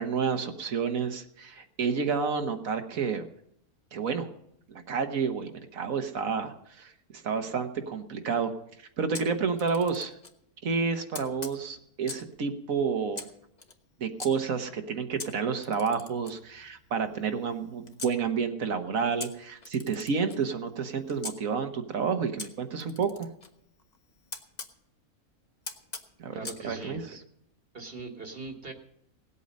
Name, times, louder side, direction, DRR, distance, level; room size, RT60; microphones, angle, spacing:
voice 1, 0.0-3.3 3.9-4.3 4.7-8.5 9.0-10.1 10.6-13.3 14.0-23.3 26.2-26.4 26.6-27.2, right 5 dB, 65° right, 7 dB, 1.5 m, -30 dB
Camera, 9.1-10.4 11.1-12.4 13.1-14.3 15.2-18.2 19.2-21.4 22.4-24.7 25.6-26.6, left 3 dB, 30° left, 1.2 m, -43 dB
voice 2, 26.3-27.2 27.7-28.7, right 3 dB, 40° right, 4 dB, 1.7 m, -41 dB
18.0 x 8.4 x 5.3 m, 0.74 s
omnidirectional pair, 1.6 m